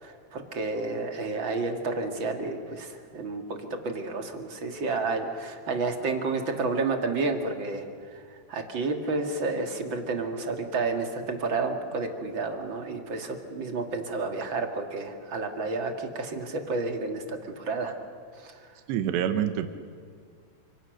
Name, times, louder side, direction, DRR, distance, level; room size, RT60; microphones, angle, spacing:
voice 1, 0.0-7.8 8.5-17.9 18.4-18.6, right 3 dB, 40° right, 4 dB, 2.0 m, -30 dB
voice 2, 18.9-19.7, right 9 dB, 85° right, 8 dB, 3.3 m, -26 dB
30.0 x 27.0 x 6.6 m, 2.1 s
omnidirectional pair, 4.8 m